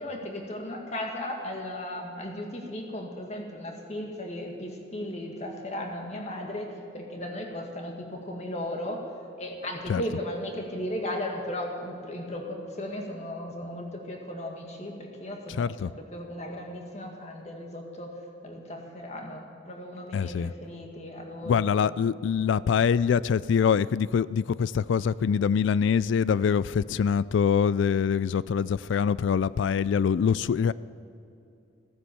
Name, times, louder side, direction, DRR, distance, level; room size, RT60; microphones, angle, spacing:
voice 1, 0.0-6.7 6.9-9.0 9.4-18.2 18.4-21.7, left 1 dB, 35° left, 1.9 m, -36 dB
voice 2, 15.6-15.9 20.1-20.5 21.5-30.7, left 7 dB, 75° left, 0.3 m, -24 dB
16.0 x 9.8 x 7.0 m
head